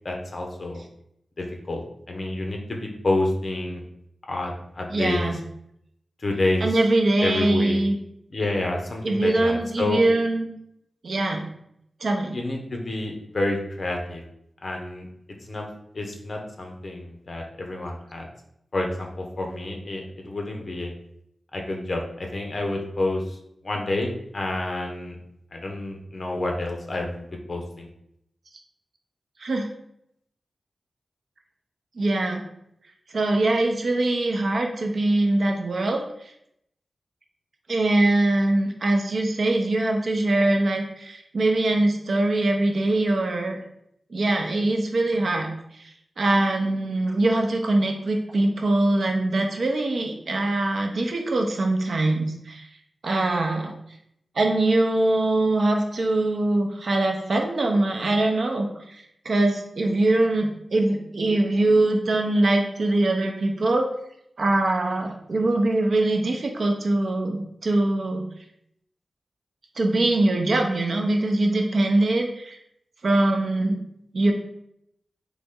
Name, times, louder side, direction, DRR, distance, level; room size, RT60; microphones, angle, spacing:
voice 1, 0.0-0.8 1.4-3.8 4.3-5.3 6.2-6.8 7.2-7.8 8.3-10.0 12.3-14.2 14.6-15.1 15.4-15.7 15.9-18.3 18.7-20.9 21.5-23.4 23.6-25.2 25.5-27.9, left 2 dB, 45° left, 1 dB, 0.9 m, -29 dB
voice 2, 4.9-5.3 6.6-8.0 9.0-10.5 11.0-11.4 12.0-12.4 29.4-29.7 32.0-32.4 33.1-36.0 37.7-43.6 44.1-45.9 46.2-52.7 53.0-53.7 54.3-63.9 64.4-68.3 69.8-72.6 73.0-73.8 74.1-74.3, right 2 dB, 65° right, 2 dB, 0.7 m, -22 dB
4.0 x 3.3 x 3.7 m, 0.75 s
wide cardioid pair, 115°, 0 cm